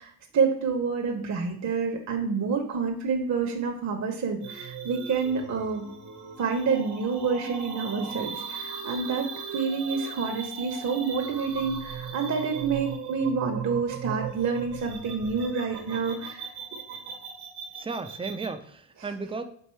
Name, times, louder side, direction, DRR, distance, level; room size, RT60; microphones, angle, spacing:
voice 1, 0.0-5.9 6.4-16.5, right 5 dB, 40° right, 3 dB, 0.7 m, -28 dB
sound 1, 4.4-18.5, right 6 dB, 65° right, 0.9 m, -38 dB
voice 2, 17.8-19.4, right 4 dB, 15° right, 8 dB, 0.3 m, -34 dB
4.5 x 2.7 x 3.1 m, 0.63 s
supercardioid pair, 55°, 43 cm